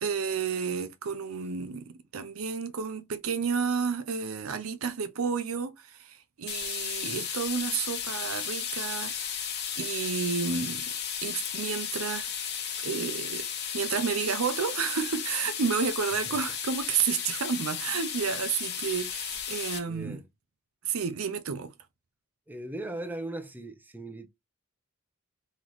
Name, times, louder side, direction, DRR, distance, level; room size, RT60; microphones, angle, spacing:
voice 1, 0.0-9.4 9.8-10.8 11.2-12.3 12.8-13.5 13.7-20.2 20.8-21.7, right 6 dB, 75° right, 0.6 m, -31 dB
sound 1, 6.5-19.8, left 8 dB, 50° left, 1.1 m, -34 dB
voice 2, 19.9-20.3 22.5-24.3, right 1 dB, 10° right, 0.6 m, -38 dB
3.9 x 3.0 x 3.1 m
head